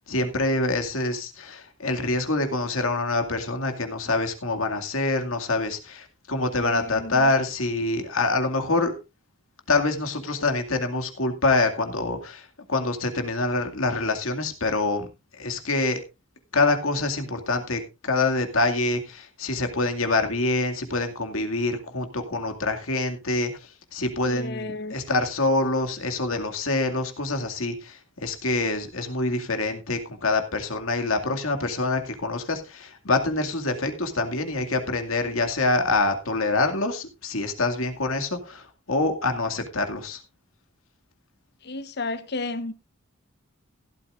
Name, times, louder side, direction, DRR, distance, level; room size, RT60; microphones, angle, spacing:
voice 1, 0.1-8.9 9.7-16.0 16.5-40.2, left 2 dB, 90° left, 2.3 m, -26 dB
voice 2, 6.6-7.2 24.2-24.9 41.6-42.7, left 3 dB, 55° left, 1.1 m, -33 dB
16.0 x 12.0 x 2.5 m
head